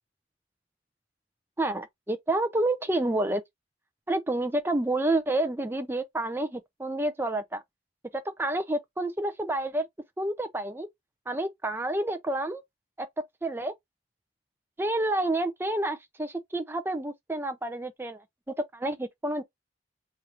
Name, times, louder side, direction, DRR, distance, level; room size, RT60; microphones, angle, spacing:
voice 1, 1.6-3.4 4.1-7.6 8.4-9.9 10.2-10.9 11.3-12.6 13.0-13.1 13.4-13.7 14.8-19.4, right 1 dB, 10° right, 0.4 m, -29 dB
4.4 x 2.5 x 2.9 m
head